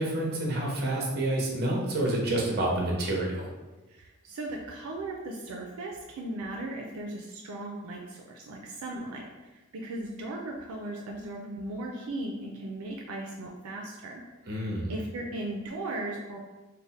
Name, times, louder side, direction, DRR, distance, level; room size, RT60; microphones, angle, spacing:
voice 1, 0.0-3.5 14.5-14.9, right 1 dB, 45° right, -2 dB, 0.8 m, -28 dB
voice 2, 3.9-14.2 14.9-16.4, right 2 dB, 85° right, 0 dB, 0.4 m, -37 dB
3.3 x 2.1 x 4.0 m, 1.1 s
head